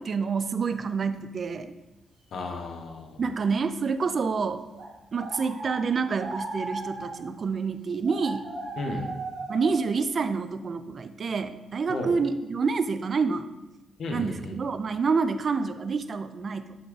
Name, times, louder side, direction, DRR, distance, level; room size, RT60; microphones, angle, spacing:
voice 1, 0.0-1.7 3.2-4.6 5.1-8.5 9.5-13.5 14.1-16.8, right 5 dB, 50° right, 11 dB, 0.4 m, -28 dB
voice 2, 2.3-3.2 8.8-9.1 11.9-12.2 14.0-14.6, left 2 dB, 75° left, 2 dB, 1.1 m, -33 dB
sound 1, 3.6-3.7 4.2-4.3 4.7-5.9 6.1-7.3 8.0-9.9, right 2 dB, 80° right, 1.9 m, -36 dB
9.2 x 3.6 x 4.0 m, 1.0 s
cardioid pair, 100°, 0 cm